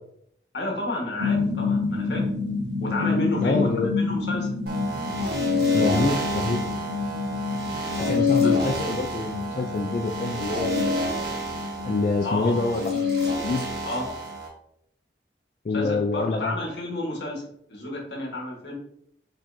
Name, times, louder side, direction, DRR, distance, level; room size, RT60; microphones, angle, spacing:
voice 1, 0.5-2.2 2.8-4.5 8.4-8.5 12.2-12.5 13.8-14.0 15.7-17.4 17.7-18.7, left 1 dB, 75° left, -1 dB, 1.3 m, -30 dB
sound 1, 1.2-14.1, left 4 dB, 80° right, 0.9 m, -30 dB
voice 2, 3.4-3.9 5.7-6.6 8.1-11.2 11.8-13.0 13.4-13.6 15.6-16.6, left 3 dB, 45° left, 2 dB, 0.3 m, -26 dB
sound 2, 4.7-14.5, left 2 dB, 60° right, 1.3 m, -27 dB
5.1 x 3.6 x 2.6 m, 0.70 s
head